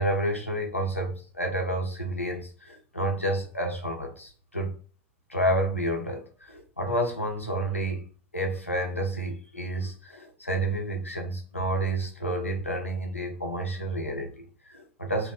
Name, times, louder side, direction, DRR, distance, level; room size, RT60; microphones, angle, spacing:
voice 1, 0.0-4.7 5.3-8.1 8.3-15.3, right 1 dB, 90° left, 2 dB, 0.6 m, -30 dB
2.9 x 2.1 x 3.3 m, 0.41 s
figure-of-eight pair, 85°, 7 cm